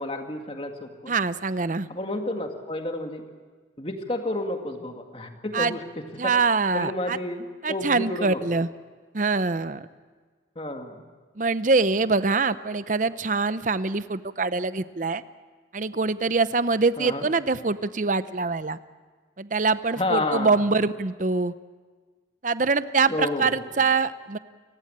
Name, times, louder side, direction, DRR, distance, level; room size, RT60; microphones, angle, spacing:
voice 1, 0.0-1.1 1.9-3.2 3.8-5.8 6.2-6.3 6.7-8.4 10.6-11.0 17.0-17.3 20.0-20.6 23.1-23.5, left 1 dB, 30° left, 4 dB, 2.1 m, -30 dB
voice 2, 1.1-1.9 5.5-5.8 6.2-7.2 7.6-8.7 9.1-9.9 11.4-15.2 15.7-18.8 19.4-21.5 22.4-24.4, right 4 dB, 45° right, 14 dB, 0.7 m, -24 dB
29.5 x 16.0 x 8.8 m, 1.5 s
head